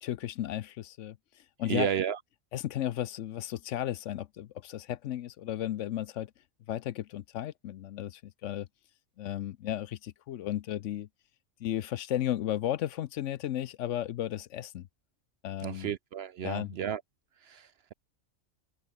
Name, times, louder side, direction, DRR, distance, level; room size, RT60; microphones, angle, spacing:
voice 1, 0.0-1.2 1.6-1.9 2.5-6.3 6.7-8.7 9.2-11.1 11.6-14.9 15.4-15.9 16.4-16.7, left 12 dB, 70° left, 0.9 m, -34 dB
voice 2, 1.7-2.2 15.6-17.0 17.4-17.9, right 9 dB, 60° right, 0.7 m, -33 dB
omnidirectional pair, 1.4 m